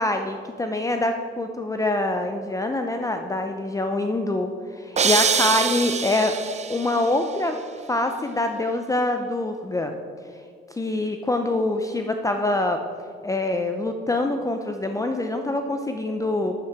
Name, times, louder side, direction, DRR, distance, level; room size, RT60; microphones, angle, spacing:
voice 1, 0.0-6.4 6.7-7.6 7.9-9.9 10.8-12.8 13.2-16.6, left 2 dB, 15° left, 5 dB, 0.6 m, -25 dB
sound 1, 5.0-7.0, right 6 dB, 35° right, 0.6 m, -24 dB
8.8 x 7.7 x 4.8 m, 2.2 s
cardioid pair, 90°, 20 cm